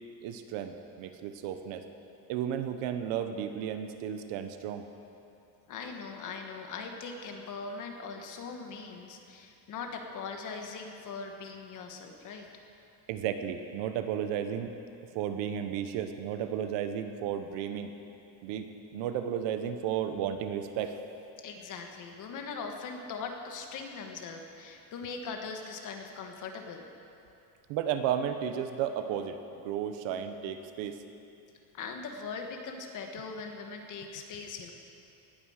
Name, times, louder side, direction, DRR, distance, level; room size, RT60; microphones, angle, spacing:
voice 1, 0.2-1.9 2.3-4.9 13.1-14.7 15.1-17.9 18.4-21.0 27.7-31.0, right 9 dB, 65° right, 8 dB, 1.1 m, -33 dB
voice 2, 5.7-12.5 21.4-26.8 31.7-34.7, left 4 dB, 40° left, 3 dB, 1.5 m, -40 dB
18.5 x 9.3 x 6.5 m, 2.7 s
cardioid pair, 165°, 47 cm